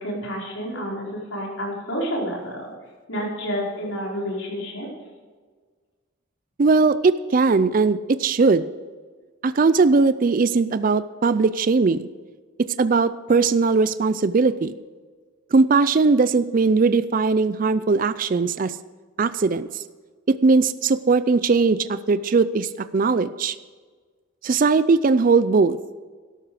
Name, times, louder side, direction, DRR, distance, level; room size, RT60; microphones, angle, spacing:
voice 1, 0.0-2.7 3.1-4.9, equal, 70° left, -3 dB, 4.9 m, -29 dB
voice 2, 6.6-8.7 9.4-12.1 12.6-14.8 15.5-18.8 19.2-19.8 20.3-23.6 24.4-25.8, right 4 dB, 40° right, 14 dB, 0.4 m, -19 dB
12.5 x 12.5 x 4.9 m, 1.5 s
head